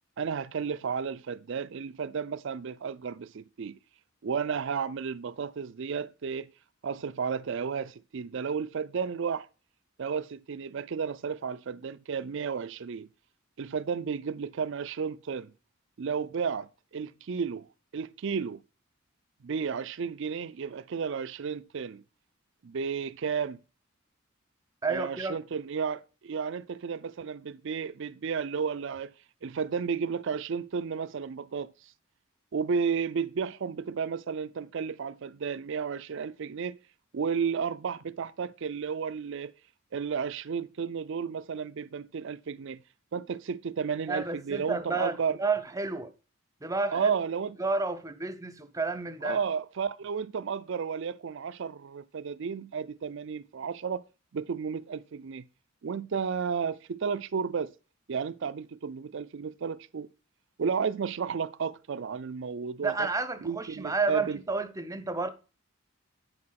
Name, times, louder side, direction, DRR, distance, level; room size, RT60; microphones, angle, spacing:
voice 1, 0.2-3.8 4.2-6.5 6.8-9.5 10.0-13.1 13.6-15.5 16.0-17.7 17.9-18.6 19.4-22.0 22.6-23.6 24.9-29.1 29.4-31.7 32.5-36.8 37.1-39.5 39.9-42.8 43.1-45.4 46.9-47.6 49.2-54.0 54.3-55.5 55.8-57.7 58.1-60.1 60.6-63.1 63.5-64.4, right 6 dB, 60° right, 0.4 m, -32 dB
voice 2, 24.8-25.4 44.1-46.1 46.6-47.2 47.6-49.4 62.8-65.3, right 3 dB, 15° right, 0.6 m, -31 dB
9.8 x 4.4 x 5.8 m
head